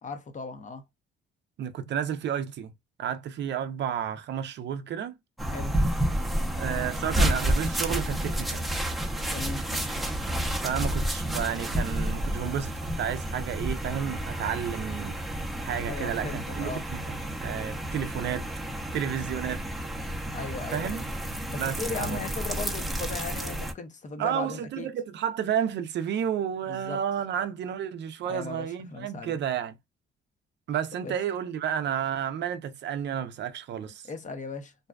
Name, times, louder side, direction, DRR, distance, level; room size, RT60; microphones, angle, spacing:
voice 1, 0.0-0.8 5.5-5.8 9.3-9.6 15.9-16.8 20.3-21.0 21.5-24.9 26.7-27.0 28.3-29.3 31.0-31.1 34.1-34.7, left 4 dB, 40° left, 0.6 m, -37 dB
voice 2, 1.6-2.7 3.0-5.2 6.5-8.6 10.6-15.2 15.6-18.5 18.9-19.6 20.7-21.0 21.6-22.2 24.2-29.8 30.7-34.0, right 9 dB, 60° right, 0.5 m, -31 dB
sound 1, 5.4-23.7, right 1 dB, ahead, 0.6 m, -30 dB
2.6 x 2.2 x 2.2 m
cardioid pair, 90°, 20 cm